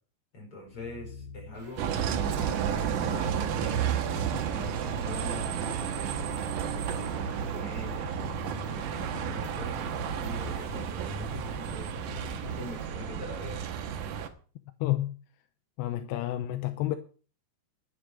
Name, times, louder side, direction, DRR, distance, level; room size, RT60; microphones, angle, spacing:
voice 1, 0.3-1.9 2.3-3.8 4.2-8.2 8.6-11.9 12.5-13.6, left 2 dB, 30° left, 5.6 m, -44 dB
sound 1, 0.7-12.8, left 5 dB, 55° left, 3.6 m, -46 dB
sound 2, 1.5-12.9, right 2 dB, 35° right, 3.5 m, -50 dB
Bus, 1.8-14.3, right 8 dB, 65° right, 2.2 m, -32 dB
voice 2, 14.8-15.1 15.8-17.0, left 14 dB, 80° left, 2.9 m, -30 dB
11.5 x 10.5 x 6.3 m
omnidirectional pair, 4.9 m